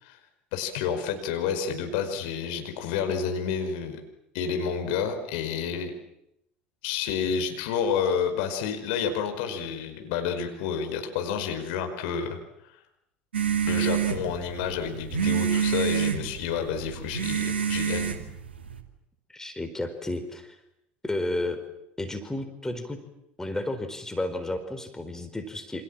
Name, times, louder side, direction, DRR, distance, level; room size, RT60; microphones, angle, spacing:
voice 1, 0.5-4.0 4.3-5.9 6.8-12.4 12.7-12.8 13.7-18.1, left 7 dB, 65° left, 6 dB, 5.1 m, -29 dB
sound 1, 13.3-18.8, right 8 dB, 80° right, 2.7 m, -27 dB
voice 2, 19.3-20.6 21.0-21.6 22.0-23.0 23.4-25.8, left 1 dB, 10° left, 8 dB, 4.3 m, -32 dB
28.5 x 27.0 x 7.6 m, 0.80 s
figure-of-eight pair, 70°, 6 cm